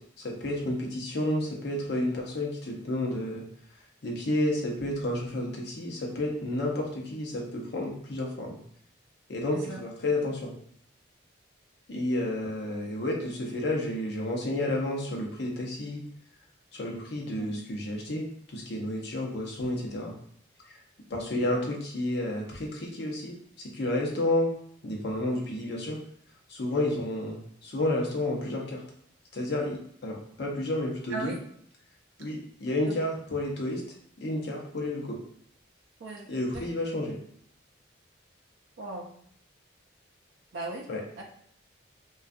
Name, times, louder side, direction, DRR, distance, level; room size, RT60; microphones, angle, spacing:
voice 1, 0.0-3.4 4.0-8.6 9.3-10.5 11.9-16.0 16.7-18.3 18.5-20.1 20.7-20.8 21.1-24.5 24.8-26.0 26.5-28.8 29.3-31.3 32.2-33.8 34.2-35.2 36.3-37.2 40.9-41.0, left 1 dB, 60° left, -1 dB, 0.6 m, -31 dB
voice 2, 36.0-36.7 38.8-39.1 40.5-40.9 41.2-41.3, right 3 dB, 75° right, -1 dB, 0.4 m, -37 dB
2.3 x 2.3 x 2.5 m, 0.66 s
head